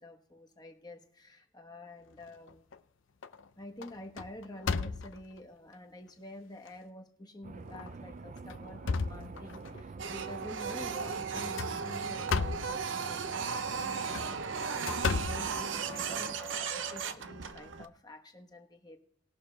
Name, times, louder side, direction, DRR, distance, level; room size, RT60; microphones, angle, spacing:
voice 1, 0.0-2.6 3.6-19.0, left 1 dB, 20° left, 4 dB, 1.2 m, -49 dB
sound 1, 2.2-2.8 3.2-3.5 3.8-5.4 6.1-6.2 6.7-6.8 7.7-7.9 8.4-9.8 11.3-12.8 13.9-16.2, left 4 dB, 85° left, 0.6 m, -35 dB
sound 2, 7.4-16.4, right 4 dB, 40° right, 0.4 m, -46 dB
Printer, 10.0-17.9, right 6 dB, 80° right, 0.7 m, -36 dB
19.5 x 6.7 x 3.3 m, 0.70 s
head